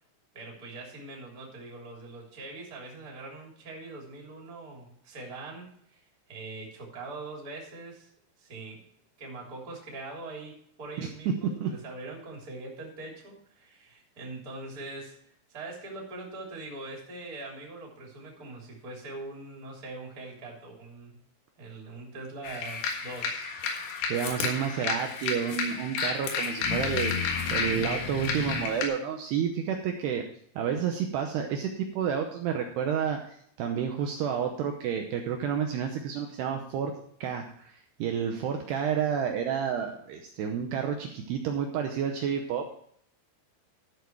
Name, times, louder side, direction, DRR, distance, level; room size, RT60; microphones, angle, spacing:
voice 1, 0.3-6.0 6.3-8.1 8.4-8.8 9.2-15.2 15.5-21.2 21.6-23.5, right 2 dB, 20° right, -2 dB, 2.9 m, -42 dB
voice 2, 11.0-11.3 11.6-11.7 24.1-30.3 30.6-36.9 37.2-42.7, right 8 dB, 75° right, 3 dB, 2.5 m, -30 dB
sound 1, 22.4-28.9, left 5 dB, 85° left, 4.3 m, -31 dB
13.0 x 6.9 x 4.6 m, 0.65 s
omnidirectional pair, 5.7 m